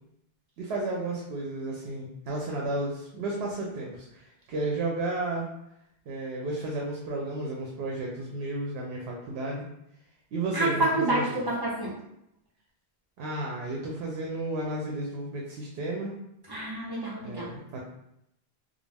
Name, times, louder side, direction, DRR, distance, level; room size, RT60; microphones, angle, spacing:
voice 1, 0.6-5.5 6.1-9.7 10.3-11.4 13.2-16.1 17.2-17.8, right 2 dB, 80° right, -2 dB, 0.8 m, -33 dB
voice 2, 10.5-11.9 16.5-17.5, right 2 dB, 30° right, -6 dB, 0.6 m, -28 dB
2.4 x 2.0 x 3.3 m, 0.79 s
omnidirectional pair, 1.0 m